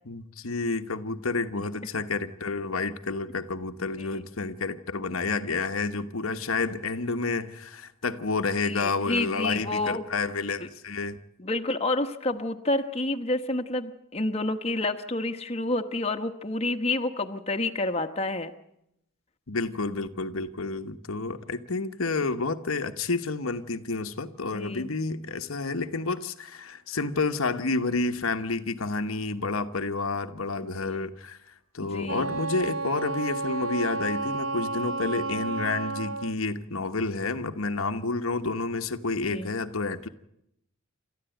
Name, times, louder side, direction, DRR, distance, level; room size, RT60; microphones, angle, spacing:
voice 1, 0.1-11.2 19.5-40.1, left 3 dB, 75° left, 7 dB, 1.2 m, -30 dB
voice 2, 8.6-10.0 10.6-10.7 11.4-18.5 24.5-24.9 30.8-31.1 31.9-32.3 39.3-39.5, left 2 dB, 30° left, 5 dB, 1.2 m, -29 dB
Wind instrument woodwind instrument, 32.0-36.4, right 3 dB, 70° right, 1.3 m, -31 dB
28.5 x 13.5 x 9.1 m, 0.81 s
head